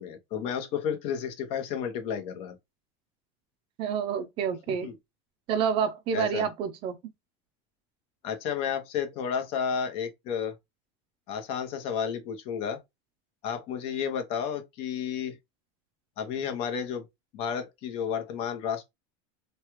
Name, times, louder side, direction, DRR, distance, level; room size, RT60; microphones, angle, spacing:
voice 1, 0.0-2.6 4.8-4.9 6.1-6.5 8.2-10.5 11.3-12.8 13.4-15.4 16.2-17.0 17.3-18.8, left 7 dB, 45° left, 0.9 m, -32 dB
voice 2, 3.8-4.9 5.5-7.0, right 7 dB, 40° right, 0.5 m, -28 dB
3.2 x 2.3 x 3.0 m
supercardioid pair, 160°, 14 cm